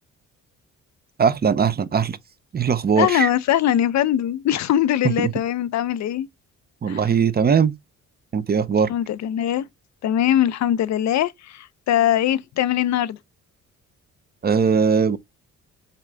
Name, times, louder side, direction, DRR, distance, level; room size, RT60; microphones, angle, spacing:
voice 1, 1.2-2.2 2.5-3.3 5.2-5.3 6.8-7.7 8.3-8.9 14.4-15.2, right 6 dB, 30° right, 0.6 m, -20 dB
voice 2, 3.0-6.3 6.9-7.1 8.9-9.7 10.0-13.2, left 11 dB, 65° left, 0.6 m, -21 dB
6.7 x 2.4 x 3.3 m
cardioid pair, 90°, 30 cm